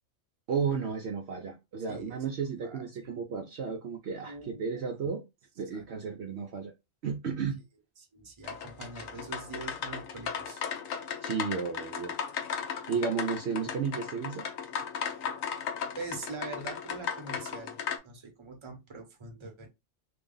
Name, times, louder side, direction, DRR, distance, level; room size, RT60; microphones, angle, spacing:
voice 1, 0.5-5.2 5.6-6.7 7.0-7.6 11.2-12.2 12.9-14.4, right 6 dB, 60° right, 0.8 m, -33 dB
voice 2, 1.9-2.2 2.6-2.9 4.3-4.8 5.7-5.8 8.1-10.6 15.1-15.5 15.9-17.8 18.0-19.7, right 3 dB, 25° right, 0.8 m, -43 dB
sound 1, 8.4-18.0, left 7 dB, 80° left, 1.1 m, -36 dB
3.3 x 2.3 x 3.7 m
omnidirectional pair, 1.4 m